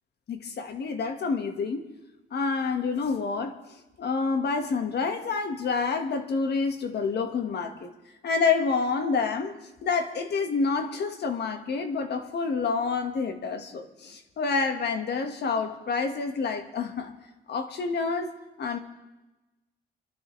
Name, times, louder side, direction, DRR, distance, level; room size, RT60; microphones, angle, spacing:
voice 1, 0.3-1.9 2.3-3.6 4.0-7.9 8.2-17.1 17.5-18.3 18.6-18.8, left 4 dB, 55° left, 6 dB, 1.6 m, -28 dB
27.0 x 12.0 x 3.3 m, 1.1 s
cardioid pair, 90°, 20 cm